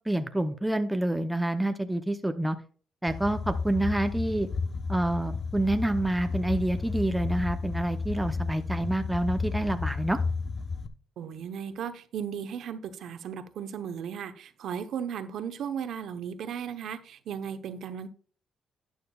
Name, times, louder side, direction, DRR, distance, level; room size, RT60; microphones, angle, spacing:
voice 1, 0.0-2.6 3.0-4.5 4.9-10.2, right 1 dB, 5° right, 0.6 m, -28 dB
sound 1, 3.1-10.9, left 4 dB, 45° left, 0.9 m, -32 dB
voice 2, 11.2-18.1, right 8 dB, 70° right, 0.8 m, -36 dB
12.0 x 8.9 x 2.3 m
cardioid pair, 90°, 0 cm